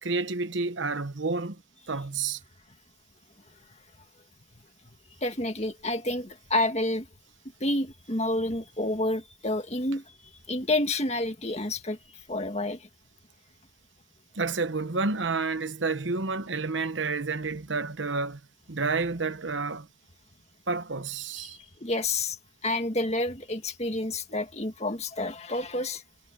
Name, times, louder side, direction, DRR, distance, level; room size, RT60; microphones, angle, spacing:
voice 1, 0.0-1.6 1.9-2.4 14.3-18.4 18.7-19.9 20.7-21.6, right 4 dB, 80° right, 1.1 m, -30 dB
voice 2, 5.2-7.1 7.6-10.1 10.5-12.0 12.3-12.9 21.4-22.4 22.6-26.0, left 2 dB, 35° left, 2.0 m, -29 dB
head